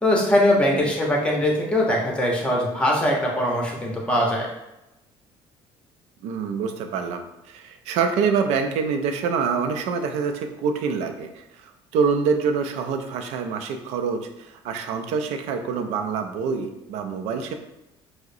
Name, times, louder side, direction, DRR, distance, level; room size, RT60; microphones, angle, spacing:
voice 1, 0.0-4.5, left 1 dB, 10° left, -2 dB, 1.0 m, -21 dB
voice 2, 6.2-17.5, right 5 dB, 85° right, 6 dB, 0.4 m, -26 dB
4.7 x 2.1 x 2.7 m, 0.93 s
cardioid pair, 95°, 11 cm